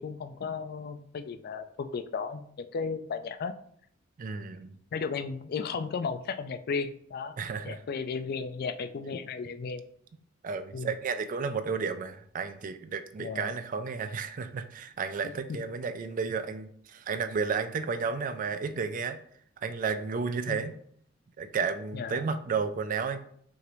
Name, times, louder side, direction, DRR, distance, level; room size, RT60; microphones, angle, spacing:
voice 1, 0.0-3.5 4.9-7.4 7.6-9.8 10.7-10.9 13.2-13.5 15.5-15.6 20.5-20.7 21.9-22.2, left 5 dB, 50° left, 11 dB, 0.3 m, -34 dB
voice 2, 4.2-4.7 7.4-7.8 10.4-19.2 19.6-20.7 21.4-23.2, right 5 dB, 40° right, 10 dB, 0.4 m, -32 dB
6.1 x 2.5 x 3.0 m, 0.65 s
head